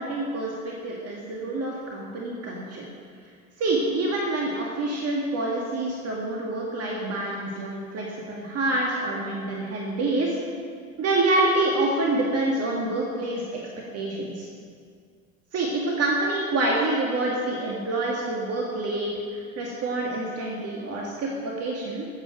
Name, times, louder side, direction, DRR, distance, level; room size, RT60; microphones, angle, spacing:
voice 1, 0.0-2.9 3.6-10.4 11.0-13.6 13.9-14.5 15.5-22.1, right 2 dB, 35° right, -2 dB, 2.0 m, -27 dB
14.0 x 8.3 x 6.3 m, 2.1 s
figure-of-eight pair, 65°, 41 cm